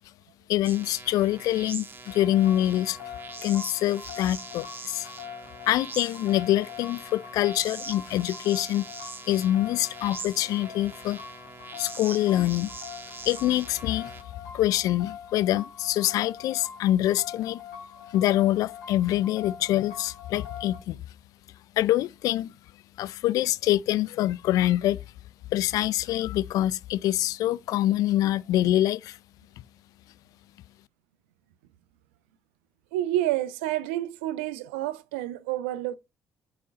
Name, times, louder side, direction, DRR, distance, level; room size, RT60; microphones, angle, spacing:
voice 1, 0.5-3.0 3.4-5.1 5.7-8.9 9.3-11.2 11.8-12.7 13.2-14.1 14.5-17.6 18.1-21.0 21.8-22.5 23.0-25.0 25.5-29.2, left 14 dB, 70° left, 0.4 m, -25 dB
sound 1, 0.6-14.2, right 4 dB, 35° right, 1.3 m, -42 dB
sound 2, 2.1-20.8, left 8 dB, 85° left, 1.7 m, -43 dB
voice 2, 32.9-36.0, right 14 dB, 85° right, 0.5 m, -29 dB
4.8 x 4.1 x 5.6 m
hypercardioid pair, 50°, 6 cm